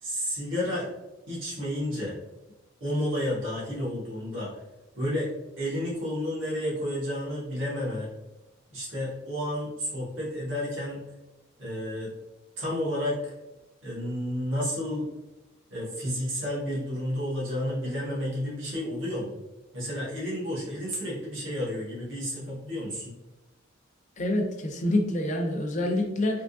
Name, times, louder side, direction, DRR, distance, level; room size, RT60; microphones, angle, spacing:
voice 1, 0.0-0.9 1.3-2.1 2.8-4.6 5.0-5.3 5.6-8.1 8.7-11.0 11.6-12.1 12.6-13.2 13.8-15.1 15.7-19.4 19.7-23.1, equal, 70° right, -7 dB, 1.3 m, -31 dB
voice 2, 24.2-26.4, left 1 dB, 35° left, 3 dB, 0.5 m, -27 dB
3.5 x 2.8 x 2.6 m, 0.99 s
head